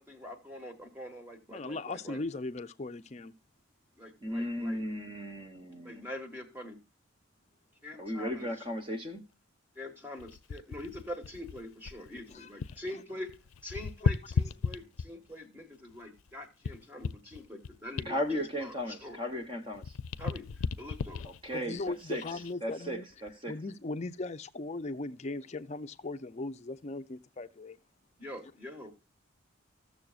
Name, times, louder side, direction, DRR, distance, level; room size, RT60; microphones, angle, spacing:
voice 1, 0.0-2.2 4.0-4.8 5.8-6.8 7.8-8.5 9.7-13.4 13.6-19.2 20.2-21.2 28.2-29.0, left 1 dB, 10° right, 1.4 m, -44 dB
voice 2, 1.5-3.3 12.3-12.8 21.5-23.1 23.5-27.8, left 2 dB, 35° left, 0.5 m, -38 dB
voice 3, 4.2-6.0 8.0-9.2 18.1-19.9 21.4-22.2 22.6-23.5, equal, 25° right, 1.1 m, -35 dB
sound 1, 10.2-12.9 13.2-15.3 15.9-19.4 19.7-22.5 23.1-23.3, left 5 dB, 90° left, 0.4 m, -36 dB
15.5 x 6.8 x 2.4 m
head